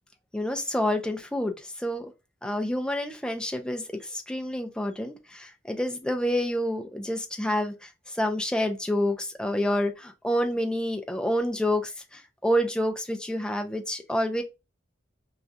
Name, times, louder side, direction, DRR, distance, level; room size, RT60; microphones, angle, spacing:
voice 1, 0.3-2.1 2.4-14.4, equal, 5° left, 0.4 m, -28 dB
4.7 x 2.3 x 2.6 m
head